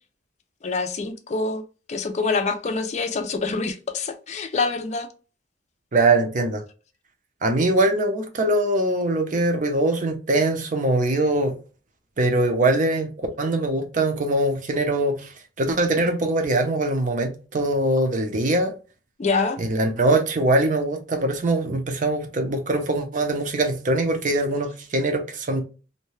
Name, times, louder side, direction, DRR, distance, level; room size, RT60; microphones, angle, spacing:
voice 1, 0.6-1.6 1.9-5.1 19.2-19.6, left 4 dB, 40° left, 0.4 m, -25 dB
voice 2, 5.9-6.6 7.4-11.5 12.2-15.3 15.6-18.7 19.6-25.6, right 2 dB, 45° right, 0.6 m, -22 dB
2.7 x 2.1 x 3.1 m
head